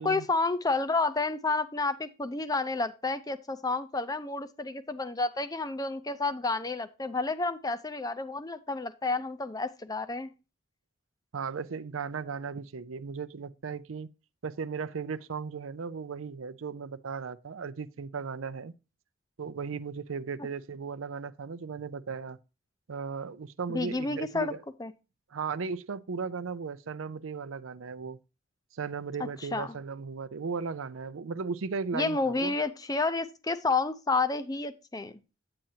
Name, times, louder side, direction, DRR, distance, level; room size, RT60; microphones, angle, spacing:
voice 1, 0.0-10.3 23.7-24.5 24.8-24.9 29.5-29.7 31.9-35.1, left 3 dB, 20° left, 0.5 m, -30 dB
voice 2, 11.3-14.1 14.4-18.7 19.4-22.4 22.9-24.6 25.3-28.2 28.7-32.5, right 5 dB, 90° right, 0.5 m, -36 dB
9.0 x 8.8 x 2.8 m
head